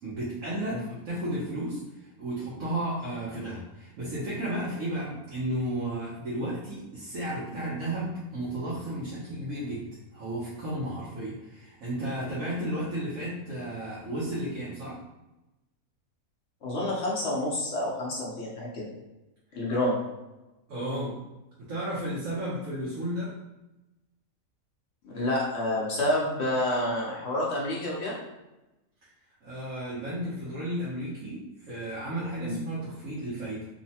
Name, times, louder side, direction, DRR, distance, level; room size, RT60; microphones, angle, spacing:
voice 1, 0.0-9.8 10.1-15.0 20.7-21.2 21.7-23.3 29.4-33.7, right 1 dB, 75° right, -8 dB, 1.1 m, -33 dB
voice 2, 16.6-18.9 19.5-20.0 25.0-28.2 32.4-32.6, left 1 dB, 60° left, -4 dB, 0.8 m, -28 dB
3.0 x 2.0 x 2.7 m, 1.0 s
omnidirectional pair, 1.5 m